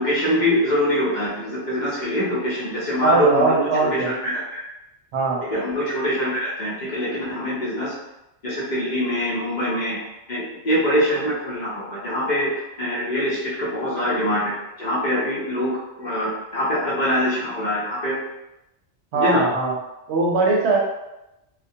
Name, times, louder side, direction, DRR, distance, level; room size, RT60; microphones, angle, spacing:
voice 1, 0.0-4.6 5.4-7.9 8.4-10.0 10.3-18.2 19.1-19.4, equal, 50° left, -7 dB, 0.7 m, -24 dB
voice 2, 3.0-4.1 5.1-5.4 19.1-19.7 20.1-20.8, right 3 dB, 75° right, -2 dB, 0.9 m, -20 dB
2.2 x 2.2 x 2.6 m, 0.93 s
omnidirectional pair, 1.2 m